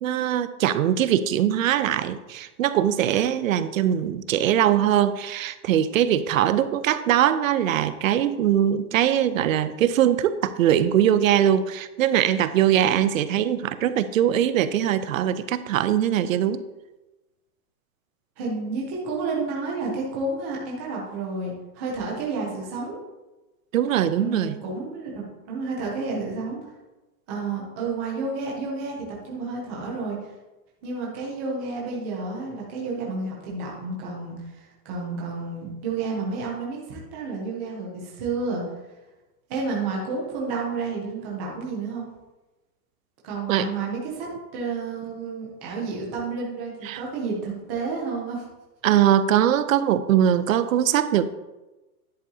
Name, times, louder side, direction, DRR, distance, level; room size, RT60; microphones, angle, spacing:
voice 1, 0.0-16.6 23.7-24.6 43.5-43.7 46.8-47.0 48.8-51.3, right 10 dB, 60° right, 13 dB, 0.6 m, -21 dB
voice 2, 18.4-23.0 24.2-26.6 27.3-29.0 29.2-30.2 30.8-38.6 39.5-42.1 43.2-48.4 49.4-49.5, right 3 dB, 10° right, -3 dB, 0.5 m, -30 dB
10.5 x 8.2 x 2.7 m, 1.1 s
supercardioid pair, 175°, 45 cm